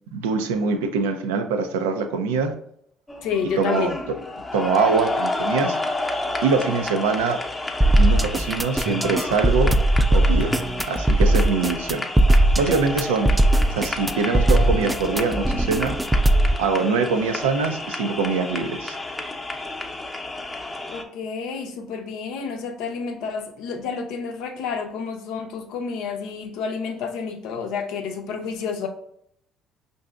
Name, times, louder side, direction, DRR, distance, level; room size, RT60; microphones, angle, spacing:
voice 1, 0.1-2.5 3.6-3.9 4.5-5.8 6.4-7.4 8.0-9.7 10.1-10.6 10.9-12.0 12.6-13.3 13.7-16.0 16.6-19.0, right 4 dB, 85° right, 7 dB, 0.4 m, -23 dB
sound 1, 3.1-21.0, left 2 dB, 20° left, 0.7 m, -31 dB
voice 2, 3.2-4.0 20.9-28.9, left 5 dB, 75° left, 4 dB, 0.5 m, -29 dB
sound 2, 7.8-16.5, right 1 dB, 15° right, 0.3 m, -19 dB
5.4 x 2.6 x 2.3 m, 0.70 s
hypercardioid pair, 60°, 0 cm